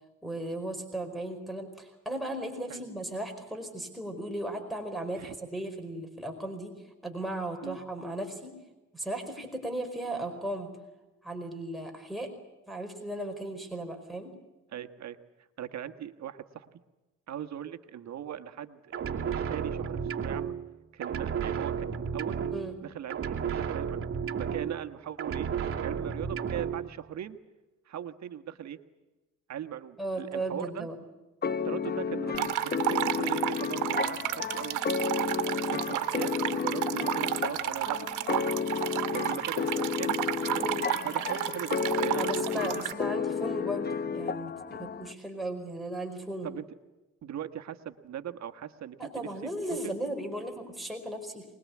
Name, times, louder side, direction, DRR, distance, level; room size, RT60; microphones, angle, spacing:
voice 1, 0.2-6.7 7.0-8.5 8.9-10.7 11.2-12.3 12.7-14.3 22.5-22.8 30.0-30.9 40.6-40.8 42.1-46.5 49.0-51.5, right 1 dB, ahead, 2 dB, 4.9 m, -36 dB
voice 2, 14.7-15.2 15.6-16.7 17.3-20.6 20.9-22.4 22.8-24.1 24.4-25.5 25.8-27.4 27.9-28.8 29.5-30.9 31.6-38.5 38.9-40.2 40.5-42.7 46.4-46.6 47.2-49.5 49.8-49.9, right 10 dB, 65° right, 8 dB, 1.4 m, -39 dB
sound 1, 18.9-20.8 21.0-22.8 23.1-24.9 25.2-26.9, right 7 dB, 45° right, 2.5 m, -33 dB
sound 2, 31.4-45.1, left 6 dB, 35° left, 0.8 m, -32 dB
sound 3, 32.3-42.9, right 13 dB, 85° right, 1.3 m, -32 dB
24.5 x 21.0 x 8.5 m, 1.1 s
cardioid pair, 90°, 30 cm